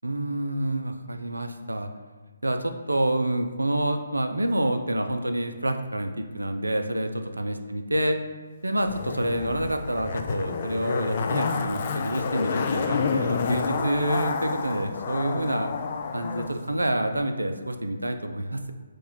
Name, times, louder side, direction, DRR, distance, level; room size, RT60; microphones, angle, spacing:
voice 1, 0.0-1.9 2.4-8.2 8.6-15.7 16.1-18.7, right 1 dB, 80° right, 7 dB, 0.4 m, -27 dB
Zipper (clothing), 8.9-16.5 16.8-16.9, left 5 dB, 40° left, 0.3 m, -29 dB
4.6 x 2.3 x 4.0 m, 1.4 s
figure-of-eight pair, 140°, 0 cm